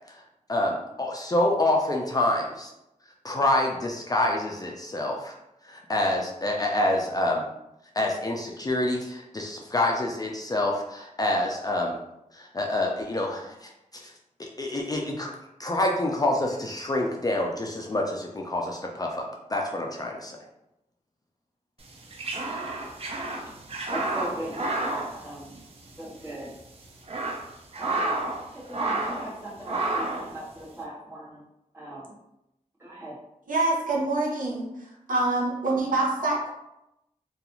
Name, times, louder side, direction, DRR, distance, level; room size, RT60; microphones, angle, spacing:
voice 1, 0.5-2.7 3.2-5.3 5.6-7.4 8.0-12.0 12.3-14.1 14.4-15.3 15.6-20.4, left 1 dB, 25° left, 0 dB, 0.3 m, -27 dB
sound 1, 21.9-26.0 26.2-26.3 26.8-28.4 28.7-29.3 29.6-30.3, right 2 dB, 45° right, 0.4 m, -30 dB
voice 2, 23.9-25.6 26.0-26.6 27.8-31.4 31.7-32.1 32.8-33.2, right 1 dB, 20° right, -8 dB, 1.2 m, -39 dB
voice 3, 33.5-34.7 35.1-36.5, right 2 dB, 80° right, -3 dB, 0.7 m, -25 dB
2.4 x 2.3 x 2.9 m, 0.88 s
wide cardioid pair, 95°, 14 cm